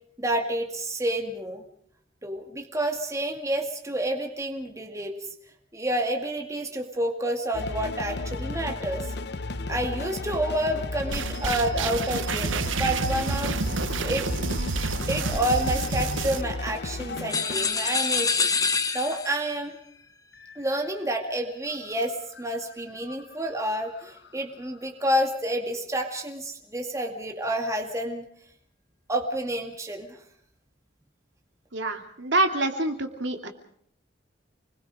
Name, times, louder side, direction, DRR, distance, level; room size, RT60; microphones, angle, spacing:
voice 1, 0.2-1.6 2.2-5.3 5.7-9.1 9.7-13.6 14.0-14.3 15.1-18.5 18.9-19.8 20.6-28.2 29.1-30.2, right 1 dB, 15° right, 3 dB, 2.2 m, -29 dB
sound 1, 7.5-18.7 20.3-21.0 21.3-21.4 21.7-24.4, left 2 dB, 60° left, 0.9 m, -34 dB
sound 2, 11.1-16.4, right 4 dB, 90° right, 0.9 m, -29 dB
sound 3, 17.3-19.5, left 5 dB, 20° left, 1.1 m, -26 dB
voice 2, 31.7-33.5, right 2 dB, 65° right, 4 dB, 2.8 m, -26 dB
29.0 x 21.5 x 5.0 m, 0.65 s
head